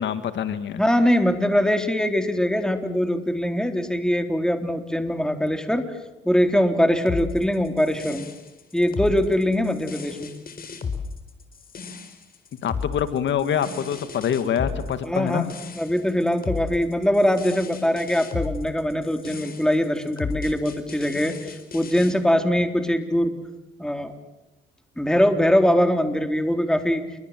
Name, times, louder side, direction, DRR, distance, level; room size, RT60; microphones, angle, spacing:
voice 1, 0.0-0.8 12.6-15.5, left 8 dB, 70° left, 11 dB, 2.0 m, -25 dB
voice 2, 0.8-5.9 6.3-8.3 8.7-10.3 15.0-15.4 15.8-23.3 23.8-24.1 25.0-27.0, equal, 5° left, 7 dB, 3.9 m, -22 dB
sound 1, 7.1-22.1, left 5 dB, 45° left, 4.5 m, -34 dB
28.5 x 24.0 x 7.7 m, 0.99 s
cardioid pair, 90°, 20 cm